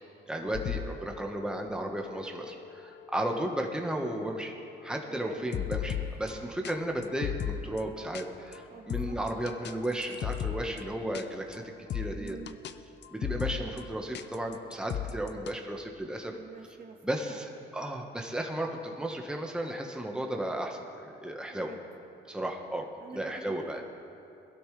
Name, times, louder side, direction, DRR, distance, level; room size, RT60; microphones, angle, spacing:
voice 1, 0.3-4.5 4.8-11.6 11.9-12.4 13.1-16.3 17.0-21.7 22.2-22.9 23.1-23.8, right 1 dB, 5° right, 1 dB, 1.4 m, -34 dB
sound 1, 0.5-6.4 6.6-6.7 7.0-7.8 8.1-8.2 8.5-8.6 8.9-10.8 11.1-11.2 11.5-11.6 11.9-12.7 13.0-13.9 14.1-15.5, left 9 dB, 60° left, 0.6 m, -37 dB
voice 2, 5.1-5.4 6.0-6.3 8.7-9.2 12.2-12.6 16.3-17.0 17.3-17.4 21.5-21.8 23.0-23.8, right 4 dB, 45° right, 3 dB, 1.5 m, -47 dB
20.5 x 12.5 x 3.4 m, 2.7 s
cardioid pair, 90°, 20 cm